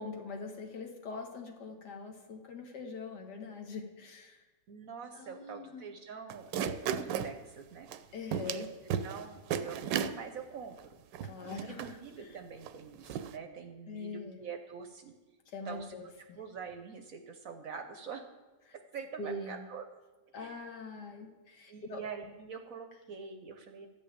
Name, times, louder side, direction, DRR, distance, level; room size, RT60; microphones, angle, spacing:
voice 1, 0.0-4.4 5.1-5.8 8.1-8.7 11.2-11.9 13.9-14.4 15.5-16.4 19.2-19.6 20.3-22.0, left 3 dB, 65° left, 3 dB, 1.8 m, -43 dB
voice 2, 4.7-7.9 8.5-8.6 9.0-11.0 11.4-15.1 15.6-16.0 16.3-18.2 18.7-19.9 20.3-20.6 21.7-23.9, right 6 dB, 60° right, 6 dB, 1.0 m, -45 dB
sound 1, 6.3-7.3 7.9-8.0 8.3-8.6 8.9-9.2 9.5-10.1 10.8-10.9 11.1-11.9 12.7-12.8 13.1-13.3, right 8 dB, 80° right, 1.2 m, -34 dB
12.5 x 5.5 x 8.6 m, 1.2 s
omnidirectional pair, 2.0 m